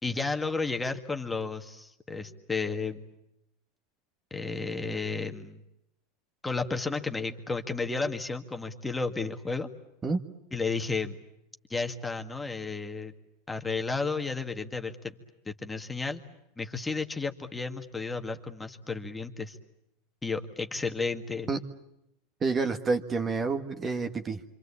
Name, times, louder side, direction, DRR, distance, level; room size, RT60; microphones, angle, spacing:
voice 1, 0.0-3.1 4.3-5.6 6.4-9.7 10.5-11.2 11.7-13.1 13.5-15.0 15.5-16.2 16.6-19.6 20.2-21.5, left 4 dB, 10° left, 5 dB, 1.9 m, -32 dB
voice 2, 22.4-24.6, right 4 dB, 25° right, 7 dB, 1.8 m, -29 dB
26.5 x 26.0 x 8.5 m, 0.83 s
hypercardioid pair, 110°, 0 cm